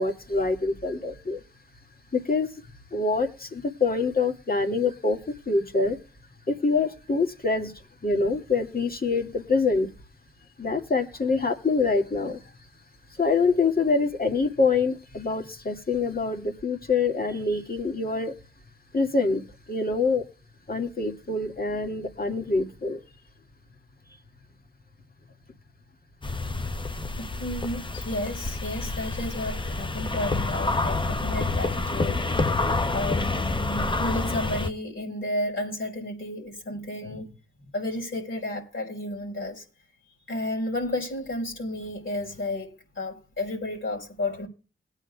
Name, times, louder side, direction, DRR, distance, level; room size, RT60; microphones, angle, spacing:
voice 1, 0.0-1.4 2.1-2.5 2.9-6.0 6.5-7.7 8.0-9.9 10.6-12.4 13.1-18.3 18.9-19.4 19.7-20.2 20.7-23.0, left 4 dB, 45° left, 2.1 m, -25 dB
sound 1, 26.2-34.7, left 3 dB, 25° left, 0.8 m, -28 dB
voice 2, 27.2-32.5 32.9-39.6 40.3-44.5, left 1 dB, 75° left, 4.6 m, -32 dB
20.5 x 9.0 x 2.4 m
cardioid pair, 55°, 21 cm